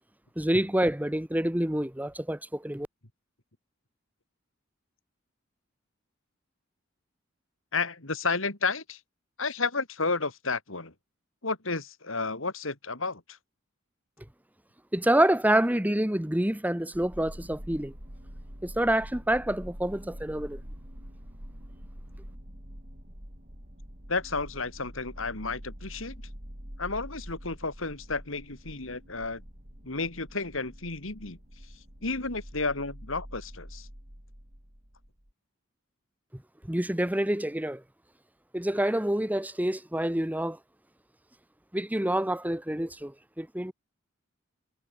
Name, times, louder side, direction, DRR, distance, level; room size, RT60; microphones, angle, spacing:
voice 1, 0.4-2.9 14.9-17.9 18.6-20.6 36.7-37.8 38.5-40.6 41.7-43.7, right 1 dB, 10° right, 1.3 m, -27 dB
voice 2, 7.7-9.0 9.4-10.9 11.4-13.4 24.1-26.2 26.8-29.4 29.8-31.4 32.0-33.9, left 3 dB, 70° left, 3.5 m, -32 dB
sound 1, 16.9-35.3, equal, 45° right, 6.5 m, -45 dB
head